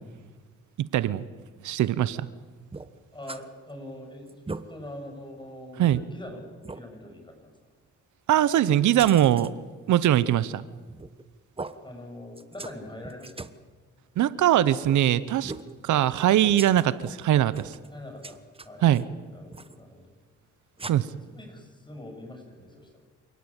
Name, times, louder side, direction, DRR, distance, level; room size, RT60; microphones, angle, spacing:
voice 1, 0.8-1.2 1.6-2.3 5.8-6.0 8.3-9.5 9.9-10.6 14.2-15.5 15.8-17.7 18.8-19.0 20.9-21.1, right 12 dB, 75° right, 16 dB, 1.1 m, -21 dB
sound 1, 2.7-3.4 3.8-3.9 4.3-4.6 5.2-5.3 5.9-6.0 6.6-6.8 9.0-9.5 10.9-11.2 11.6-11.7 12.4-12.8 13.0-13.6 14.8-15.0 15.4-15.7 16.4-17.1 17.5-17.9 18.2-19.0 19.5-19.8 20.8-20.9, right 3 dB, 20° right, 1.3 m, -39 dB
voice 2, 3.1-6.5 6.7-7.5 11.8-13.4 17.9-19.0 19.3-20.1 21.2-23.0, left 1 dB, 15° left, 3 dB, 7.8 m, -43 dB
27.5 x 18.0 x 9.0 m, 1.4 s
cardioid pair, 90°, 30 cm